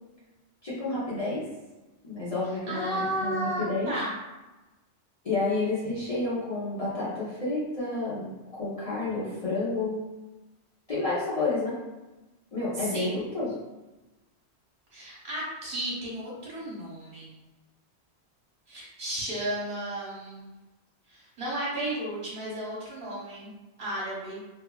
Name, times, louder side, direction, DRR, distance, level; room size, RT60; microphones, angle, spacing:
voice 1, 0.6-1.5 2.0-3.9 5.2-10.0 10.9-11.8 12.5-13.5, left 2 dB, 40° left, -10 dB, 0.6 m, -30 dB
voice 2, 2.7-4.1 12.7-13.2 14.9-17.3 18.7-20.4 21.1-23.5 23.8-24.4, right 1 dB, 55° right, -6 dB, 1.1 m, -33 dB
2.8 x 2.4 x 2.2 m, 1.1 s
omnidirectional pair, 1.1 m